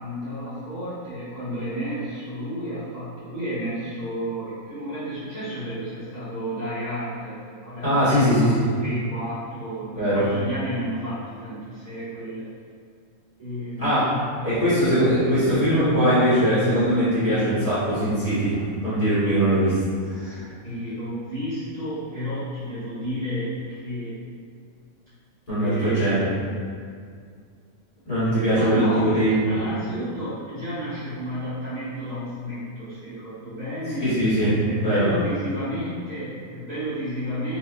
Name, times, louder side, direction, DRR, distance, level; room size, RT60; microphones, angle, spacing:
voice 1, 0.0-12.5 13.4-14.0 14.9-16.3 20.0-24.2 25.6-26.6 28.5-37.6, equal, 30° right, -15 dB, 1.4 m, -31 dB
voice 2, 7.8-8.5 9.9-10.3 13.8-14.0 14.4-19.8 20.1-20.5 25.5-26.2 28.1-29.3 34.0-34.5 34.8-35.1, equal, 25° left, -15 dB, 1.4 m, -21 dB
4.1 x 2.9 x 2.4 m, 2.1 s
omnidirectional pair, 1.5 m